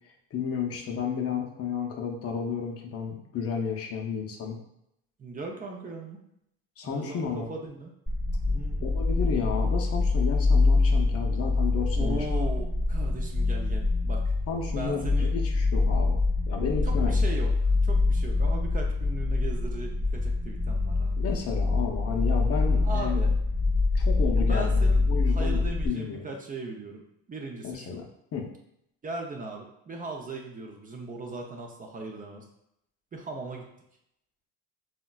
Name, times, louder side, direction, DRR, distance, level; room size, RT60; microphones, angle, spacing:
voice 1, 0.3-4.6 6.8-7.5 8.8-12.3 14.5-17.1 21.2-23.3 23.9-26.3 27.6-28.1 28.3-28.5, left 6 dB, 45° left, 1 dB, 0.6 m, -32 dB
voice 2, 5.2-6.2 6.8-7.9 8.5-8.8 12.0-14.3 14.7-15.3 16.8-21.2 22.8-23.3 24.3-28.0 29.0-32.4 33.1-33.7, right 3 dB, 25° right, 1 dB, 0.5 m, -38 dB
sound 1, 8.1-25.9, left 3 dB, ahead, 0.8 m, -25 dB
3.7 x 2.1 x 2.2 m, 0.78 s
supercardioid pair, 80°, 32 cm